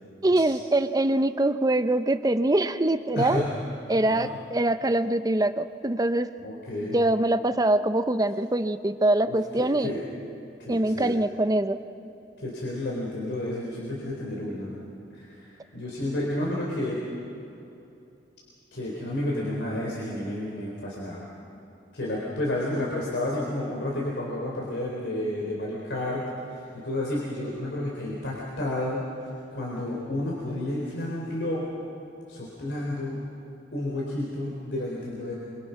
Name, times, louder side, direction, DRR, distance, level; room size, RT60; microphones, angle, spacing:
voice 1, 0.2-3.4 3.9-6.3 6.8-9.9 10.7-11.8, right 1 dB, 20° right, 10 dB, 0.7 m, -24 dB
voice 2, 3.1-3.5 4.0-4.3 6.4-7.0 9.2-10.0 10.6-11.1 12.4-14.8 15.1-17.0 18.7-21.2 21.9-31.7 32.3-33.1 33.7-35.3, left 1 dB, 85° left, -4 dB, 4.1 m, -31 dB
26.5 x 25.0 x 5.9 m, 2.8 s
head